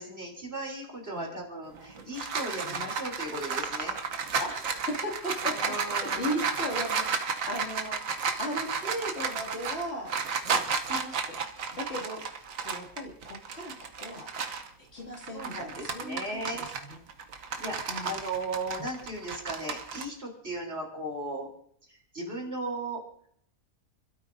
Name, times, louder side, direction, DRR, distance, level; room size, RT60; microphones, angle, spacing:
voice 1, 0.0-4.0 5.5-6.3 15.3-16.7 17.6-21.5 22.1-23.0, right 1 dB, 45° right, 0 dB, 3.8 m, -36 dB
sound 1, 1.8-14.7 15.1-20.0, right 5 dB, 70° right, 1.4 m, -33 dB
voice 2, 2.6-2.9 4.4-5.7 6.0-8.0 8.4-10.1 10.4-11.4 11.7-12.2 12.6-14.3 14.8-17.0 17.9-18.1 18.8-18.9, equal, 45° left, -2 dB, 2.8 m, -37 dB
30.0 x 12.5 x 2.7 m, 0.65 s
omnidirectional pair, 1.5 m